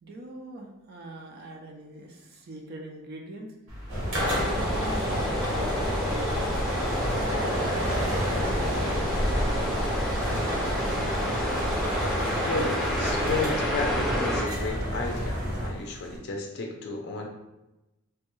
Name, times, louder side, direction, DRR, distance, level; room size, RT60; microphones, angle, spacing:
voice 1, 0.0-3.5 4.1-6.8 7.4-8.9 10.2-10.9, right 1 dB, 45° right, 1 dB, 0.4 m, -42 dB
sound 1, 3.7-16.2, equal, 65° right, 1.0 m, -34 dB
sound 2, 3.9-15.7, equal, 85° right, 1.4 m, -31 dB
sound 3, 4.2-14.4, equal, ahead, 0.5 m, -30 dB
voice 2, 12.4-17.3, left 3 dB, 50° left, 2 dB, 0.4 m, -33 dB
3.3 x 2.2 x 3.0 m, 0.98 s
head